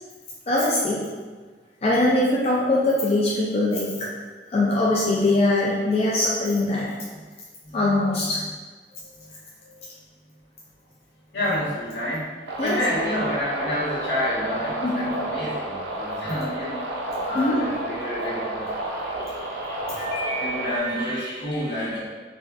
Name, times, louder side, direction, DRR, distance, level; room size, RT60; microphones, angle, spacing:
voice 1, 0.5-1.1 1.8-4.1 4.5-6.9 7.7-8.4 12.6-12.8 14.8-15.1 17.3-17.6, left 2 dB, 35° left, -5 dB, 0.3 m, -22 dB
voice 2, 7.6-8.2 8.9-9.3 9.6-9.8 11.3-12.2 12.6-16.9 17.2-22.0, equal, 75° left, -9 dB, 1.3 m, -29 dB
sound 1, 12.5-20.8, right 1 dB, 85° right, 0.5 m, -31 dB
3.9 x 2.3 x 2.4 m, 1.4 s
head